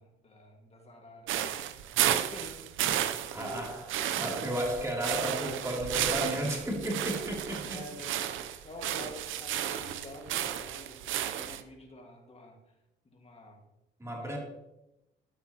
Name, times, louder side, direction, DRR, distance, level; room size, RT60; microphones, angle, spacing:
voice 1, 0.0-2.6 3.3-3.8 7.6-8.1 8.6-12.6 13.0-13.6 14.0-14.4, left 1 dB, 30° left, 2 dB, 1.7 m, -48 dB
sound 1, 1.3-11.6, right 11 dB, 80° right, 0.6 m, -33 dB
voice 2, 3.1-7.8 14.0-14.4, equal, 15° right, -2 dB, 2.8 m, -34 dB
13.0 x 5.9 x 2.9 m, 0.92 s
cardioid pair, 90°, 20 cm